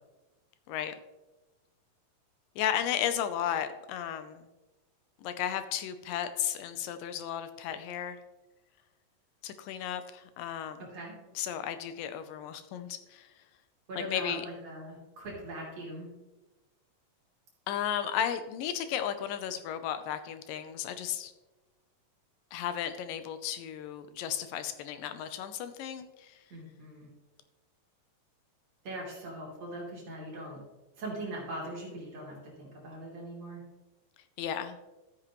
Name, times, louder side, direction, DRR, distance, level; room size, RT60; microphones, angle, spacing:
voice 1, 2.6-4.5 5.2-8.2 9.4-10.9 11.4-13.3 14.0-14.5 17.7-21.3 22.5-26.4 34.4-34.8, left 10 dB, 80° left, 10 dB, 2.3 m, -34 dB
voice 2, 10.8-11.1 13.9-16.1 26.5-27.1 28.8-30.6 31.0-33.6, right 1 dB, 50° right, -3 dB, 4.0 m, -41 dB
13.5 x 8.7 x 3.0 m, 1.1 s
omnidirectional pair, 4.0 m